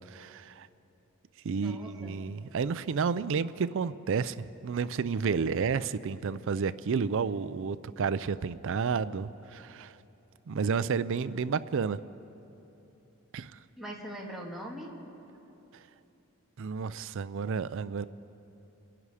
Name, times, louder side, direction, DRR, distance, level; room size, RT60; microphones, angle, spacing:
voice 1, 0.1-0.7 1.4-9.9 10.5-12.0 13.3-13.5 16.6-18.0, right 5 dB, 60° right, 0.4 m, -31 dB
voice 2, 1.6-2.2 13.8-14.9, equal, ahead, 1.9 m, -41 dB
27.5 x 10.5 x 4.9 m
head